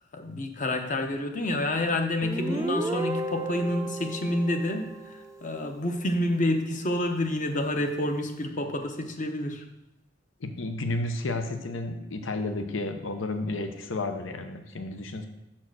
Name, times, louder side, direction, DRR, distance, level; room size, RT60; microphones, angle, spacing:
voice 1, 0.1-9.7, left 1 dB, 40° left, 5 dB, 0.8 m, -28 dB
Guitar, 2.2-5.7, right 2 dB, 15° right, 0.4 m, -33 dB
voice 2, 10.4-15.3, left 2 dB, 90° left, 7 dB, 0.7 m, -32 dB
7.2 x 4.5 x 6.1 m, 0.89 s
head